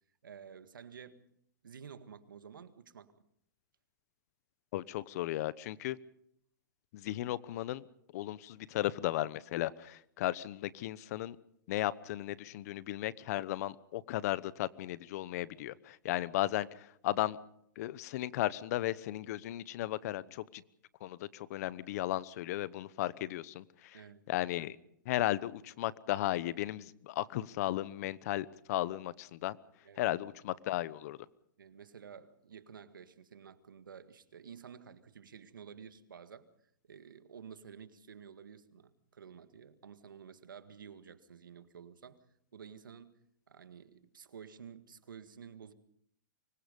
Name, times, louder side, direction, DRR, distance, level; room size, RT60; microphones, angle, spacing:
voice 1, 0.2-1.2 1.6-3.1 20.1-20.3 23.9-24.3 29.8-30.2 31.6-36.5 36.9-42.2 42.5-43.2 43.5-45.7, right 7 dB, 90° right, 10 dB, 1.9 m, -52 dB
voice 2, 4.7-6.0 6.9-7.8 8.1-11.4 11.7-17.4 17.8-20.6 21.0-24.0 24.3-24.8 25.0-29.6 30.0-31.2, left 15 dB, 50° left, 18 dB, 1.0 m, -35 dB
25.0 x 21.0 x 5.4 m, 0.70 s
hypercardioid pair, 135°, 11 cm